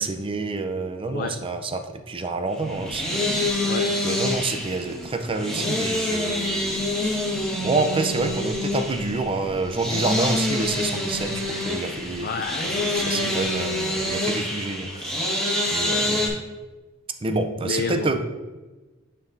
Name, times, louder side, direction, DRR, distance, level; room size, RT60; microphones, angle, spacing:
voice 1, 0.0-3.4 4.0-7.2 7.6-12.3 12.8-15.3 15.7-16.4 17.2-18.2, right 3 dB, 25° right, 7 dB, 0.5 m, -28 dB
sound 1, 2.5-16.3, left 1 dB, 5° left, 1.5 m, -26 dB
voice 2, 12.2-13.5 16.0-16.2 17.6-18.1, left 4 dB, 45° left, 5 dB, 0.4 m, -31 dB
10.0 x 4.5 x 2.6 m, 1.2 s
head